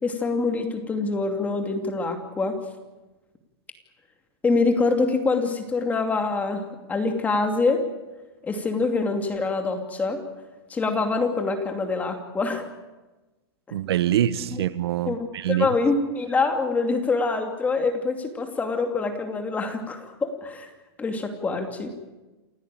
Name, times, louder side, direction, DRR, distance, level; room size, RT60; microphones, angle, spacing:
voice 1, 0.0-2.6 4.4-7.8 8.4-10.2 10.7-12.7 13.7-13.8 14.5-14.6 15.1-20.7 21.0-21.9, left 3 dB, 10° left, 2.6 m, -25 dB
voice 2, 13.7-15.7, right 11 dB, 75° right, 1.3 m, -25 dB
28.5 x 15.5 x 9.1 m
supercardioid pair, 155°, 13 cm